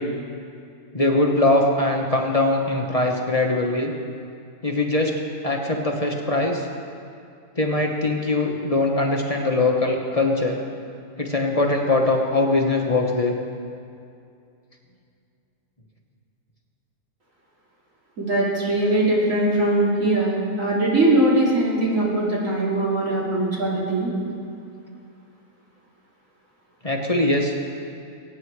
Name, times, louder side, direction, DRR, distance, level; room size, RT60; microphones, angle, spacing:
voice 1, 0.9-3.9 4.6-5.1 5.4-6.7 7.6-10.6 11.2-13.3 26.8-27.5, left 2 dB, 25° left, 0 dB, 1.1 m, -21 dB
voice 2, 18.2-24.1, right 1 dB, 55° right, -5 dB, 3.2 m, -21 dB
23.0 x 8.9 x 4.7 m, 2.5 s
omnidirectional pair, 1.6 m